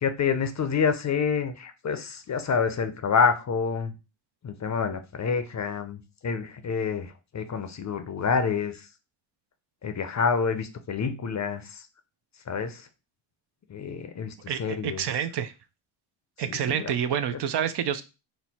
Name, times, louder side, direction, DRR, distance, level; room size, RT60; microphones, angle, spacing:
voice 1, 0.0-3.9 4.4-8.9 9.8-11.9 12.5-12.9 13.7-15.1 16.4-16.9, left 6 dB, 35° left, 9 dB, 0.6 m, -28 dB
voice 2, 14.5-15.5 16.4-18.0, right 9 dB, 55° right, 11 dB, 0.6 m, -28 dB
4.4 x 2.1 x 4.1 m, 0.29 s
cardioid pair, 85°, 50 cm